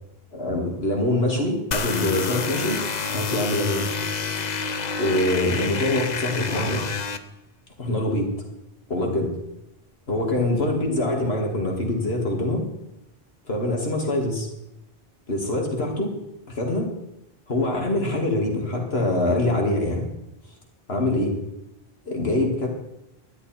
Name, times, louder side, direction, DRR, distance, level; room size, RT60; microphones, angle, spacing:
voice 1, 0.3-2.8 3.0-3.9 5.0-6.8 7.8-8.3 8.9-9.3 10.1-12.6 13.5-14.5 15.3-16.1 16.5-16.9 17.5-20.1 20.9-21.4 22.1-22.7, left 1 dB, 80° left, 1 dB, 2.8 m, -24 dB
sound 1, 1.7-7.2, left 5 dB, 50° left, 0.8 m, -28 dB
12.5 x 11.0 x 4.5 m, 0.89 s
omnidirectional pair, 1.0 m